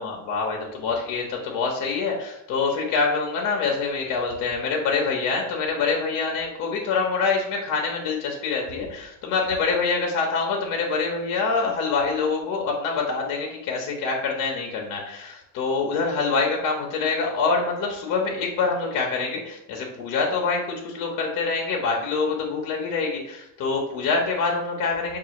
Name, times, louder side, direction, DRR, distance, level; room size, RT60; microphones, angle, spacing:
voice 1, 0.0-25.2, left 4 dB, 55° left, 0 dB, 0.9 m, -25 dB
5.3 x 2.5 x 2.9 m, 0.84 s
cardioid pair, 115°, 38 cm